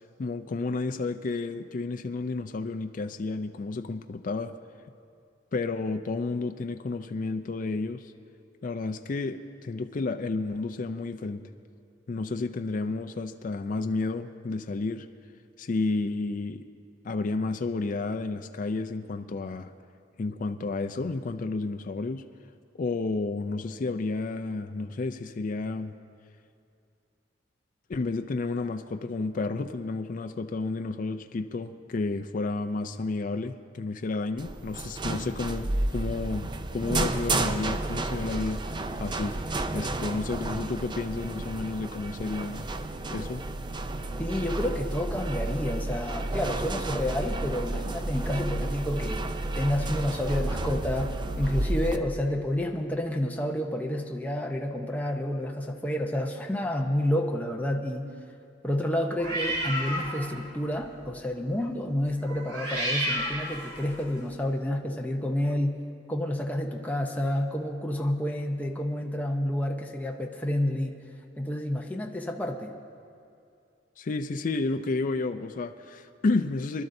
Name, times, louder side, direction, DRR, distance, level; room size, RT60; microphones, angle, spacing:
voice 1, 0.2-4.5 5.5-8.0 8.6-11.4 12.1-15.1 15.6-16.6 17.0-19.7 20.2-22.2 22.8-26.0 27.9-39.4 39.7-42.7 43.1-43.4 74.0-76.8, left 3 dB, 45° left, 8 dB, 0.4 m, -31 dB
sound 1, 34.4-52.0, right 2 dB, 25° right, 0.4 m, -31 dB
voice 2, 44.2-49.3 49.6-58.1 58.6-65.8 66.1-71.0 71.4-72.7, left 1 dB, 10° left, 1 dB, 0.7 m, -29 dB
sound 2, 59.2-60.4 60.8-61.1 62.2-64.1, right 1 dB, 75° right, 3.3 m, -31 dB
24.0 x 12.0 x 2.6 m, 2.5 s
head